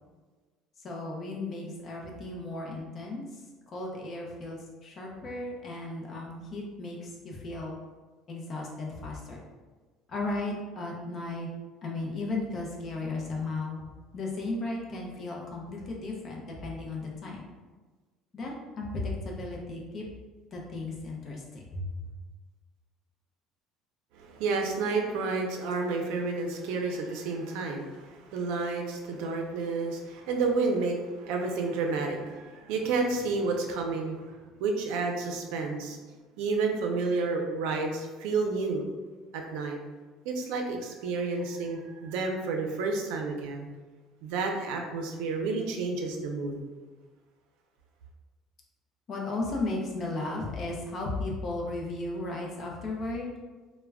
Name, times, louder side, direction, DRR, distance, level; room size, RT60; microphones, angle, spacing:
voice 1, 0.8-3.3 3.7-7.7 8.3-9.4 10.1-11.5 11.8-13.8 14.1-17.4 18.3-20.1 20.5-21.9 49.1-53.3, left 2 dB, 30° left, -2 dB, 0.5 m, -35 dB
voice 2, 24.1-34.2 34.6-36.0 36.4-38.8 39.3-39.8 40.2-43.7 44.2-46.6, right 3 dB, 85° right, 2 dB, 0.4 m, -30 dB
2.2 x 2.1 x 3.4 m, 1.4 s
cardioid pair, 170°, 0 cm